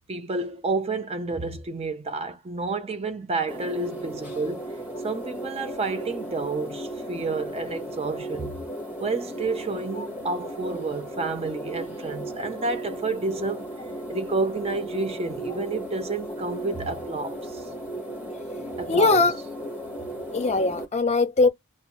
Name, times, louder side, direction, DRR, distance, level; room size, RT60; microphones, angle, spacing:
voice 1, 0.1-4.7 5.0-8.6 9.0-13.7 14.1-17.6 18.8-19.3, right 3 dB, 30° right, 0.4 m, -30 dB
sound 1, 3.5-20.8, right 1 dB, 5° right, 1.0 m, -35 dB
voice 2, 18.9-19.3 20.3-21.5, left 3 dB, 30° left, 0.5 m, -20 dB
2.6 x 2.2 x 2.9 m
head